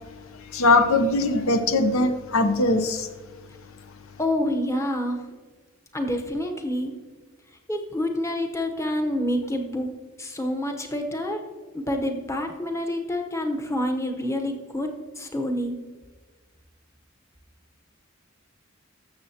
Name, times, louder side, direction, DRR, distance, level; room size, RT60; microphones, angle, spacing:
voice 1, 0.5-3.1, left 2 dB, 80° left, 8 dB, 0.8 m, -21 dB
voice 2, 4.2-5.2 5.9-6.9 7.7-9.9 10.2-11.4 11.7-15.7, left 1 dB, 15° left, 4 dB, 0.9 m, -27 dB
13.5 x 6.9 x 2.9 m, 1.3 s
head